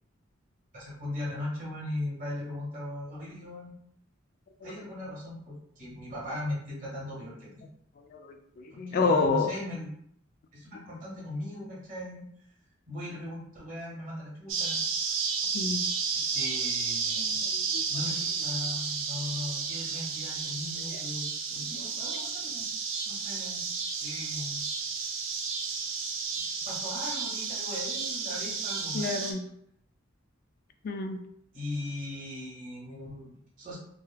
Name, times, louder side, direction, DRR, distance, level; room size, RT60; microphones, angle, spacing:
voice 1, 0.7-3.7 4.6-7.6 8.7-10.0 10.5-12.2 12.9-14.8 16.3-17.4 17.9-22.7 23.0-23.6 24.0-24.6 26.6-29.4 31.5-33.8, left 1 dB, 45° right, -6 dB, 1.2 m, -38 dB
voice 2, 8.1-9.5 15.5-15.8 17.5-17.8 21.8-22.2 28.9-29.4 30.8-31.2, left 4 dB, 50° left, 6 dB, 0.3 m, -29 dB
sound 1, 14.5-29.3, right 5 dB, 85° right, 0.5 m, -32 dB
3.2 x 2.1 x 2.3 m, 0.69 s
head